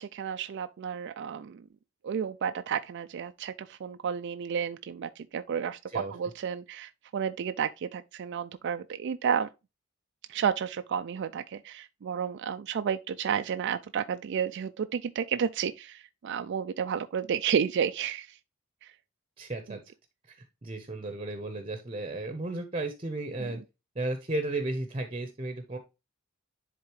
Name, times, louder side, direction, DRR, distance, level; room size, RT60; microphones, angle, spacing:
voice 1, 0.0-1.6 2.0-9.5 10.3-18.4 18.8-18.9 19.7-19.8 23.4-23.5, right 7 dB, 55° right, 0.3 m, -31 dB
voice 2, 19.4-19.8 20.3-23.6 23.9-25.8, right 2 dB, 25° right, 0.8 m, -34 dB
10.5 x 3.8 x 3.1 m
head